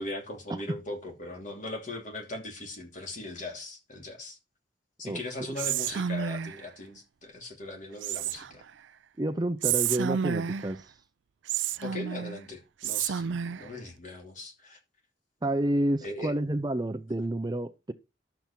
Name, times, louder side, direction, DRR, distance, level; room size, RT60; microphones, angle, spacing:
voice 1, 0.0-4.4 5.0-8.6 11.8-14.8 16.0-16.3, left 2 dB, 40° left, 3.0 m, -39 dB
Whispering, 5.6-6.7 8.0-8.7 9.6-10.8 11.5-12.4 12.8-13.7, right 8 dB, 80° right, 0.5 m, -30 dB
voice 2, 9.2-10.9 15.4-17.9, right 1 dB, 20° right, 0.5 m, -29 dB
12.0 x 7.0 x 4.5 m
head